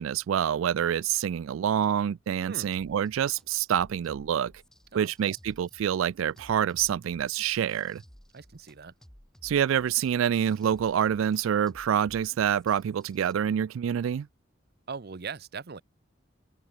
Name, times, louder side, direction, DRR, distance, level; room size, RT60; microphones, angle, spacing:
voice 1, 0.0-4.5 4.9-8.0 9.4-14.3, right 9 dB, 90° right, 0.3 m, -27 dB
voice 2, 2.4-2.7 4.9-5.3 8.3-8.9 14.9-15.8, right 5 dB, 55° right, 0.7 m, -40 dB
sound 1, 2.7-13.3, equal, 5° left, 1.0 m, -56 dB
head